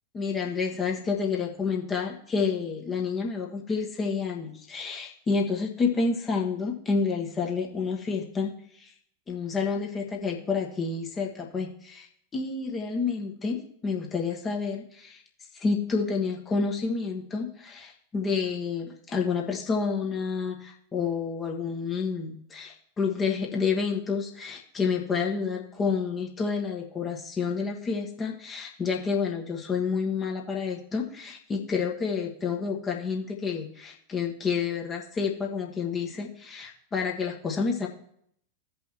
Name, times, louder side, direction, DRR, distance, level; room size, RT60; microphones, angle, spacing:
voice 1, 0.1-8.5 8.8-8.9 9.3-12.1 12.3-13.6 13.8-15.2 15.5-37.9, left 5 dB, 20° left, 0 dB, 1.3 m, -29 dB
16.0 x 5.5 x 3.1 m, 0.67 s
figure-of-eight pair, 90°, 0 cm